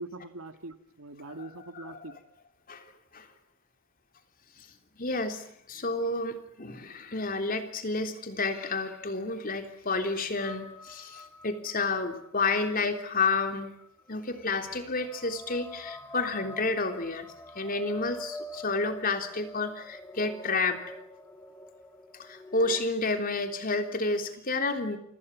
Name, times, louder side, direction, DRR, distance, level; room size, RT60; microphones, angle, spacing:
voice 1, 0.0-2.1, right 2 dB, 75° right, 9 dB, 2.1 m, -42 dB
voice 2, 1.7-2.0 2.7-2.8 3.1-3.3 5.0-13.8 14.1-17.3 17.5-20.8 22.2-25.0, left 3 dB, 40° left, 6 dB, 3.4 m, -30 dB
sound 1, 10.4-22.8, left 1 dB, 10° left, 2.1 m, -46 dB
29.0 x 25.0 x 7.4 m, 0.68 s
head